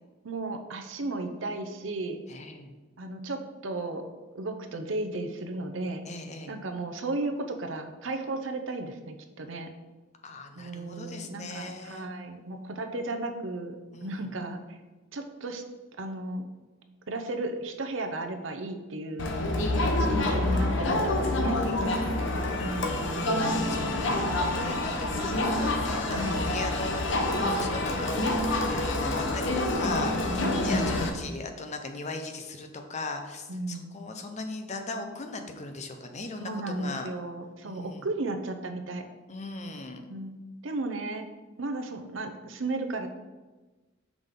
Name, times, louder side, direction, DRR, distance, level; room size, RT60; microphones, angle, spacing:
voice 1, 0.2-2.2 3.0-4.0 4.3-6.0 6.5-9.7 10.6-14.8 15.1-15.6 16.0-16.5 17.1-19.3 20.0-21.6 22.6-22.9 23.1-23.7 26.1-26.4 30.3-31.3 33.5-33.9 36.4-39.1 40.1-40.4 40.6-41.3 41.6-43.1, right 2 dB, 70° right, 6 dB, 0.7 m, -34 dB
voice 2, 2.3-2.7 6.1-6.5 10.2-12.1 13.9-14.3 22.2-37.1 37.6-38.1 39.3-40.0, left 2 dB, 35° left, 6 dB, 0.6 m, -39 dB
Crowd, 19.2-31.1, left 1 dB, 65° left, 0.8 m, -27 dB
6.0 x 5.2 x 3.7 m, 1.2 s
head